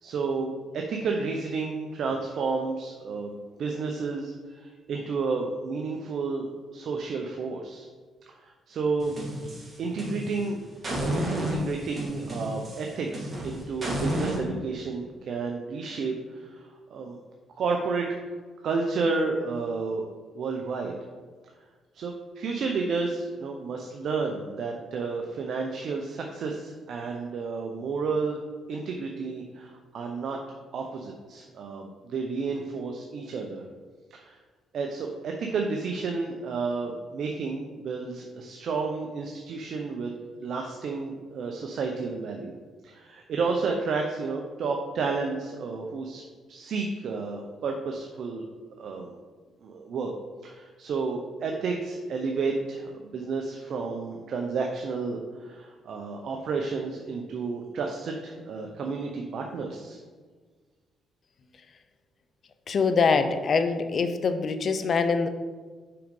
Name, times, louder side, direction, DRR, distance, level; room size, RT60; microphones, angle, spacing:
voice 1, 0.0-7.9 8.4-9.2 9.8-10.6 10.9-17.2 17.6-18.1 18.6-20.1 20.3-21.0 21.9-28.4 28.7-33.6 34.1-34.4 34.7-40.1 40.4-42.5 42.8-46.2 46.5-48.5 48.8-49.1 49.6-50.1 50.4-60.0, right 4 dB, 65° right, 2 dB, 0.7 m, -31 dB
sound 1, 9.0-10.4 10.8-14.4, right 1 dB, 35° right, 2.2 m, -31 dB
voice 2, 62.7-65.3, left 5 dB, 50° left, 9 dB, 0.6 m, -24 dB
5.7 x 5.2 x 5.3 m, 1.5 s
cardioid pair, 90°, 0 cm